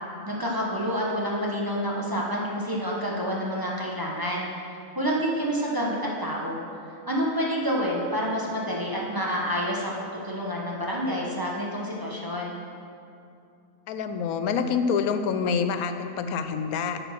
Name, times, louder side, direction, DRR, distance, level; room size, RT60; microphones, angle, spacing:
voice 1, 0.3-4.5 4.9-6.6 7.1-12.6, equal, 15° right, -4 dB, 1.1 m, -28 dB
voice 2, 13.9-17.0, left 6 dB, 90° left, 8 dB, 1.1 m, -26 dB
8.9 x 6.7 x 5.9 m, 2.5 s
omnidirectional pair, 1.5 m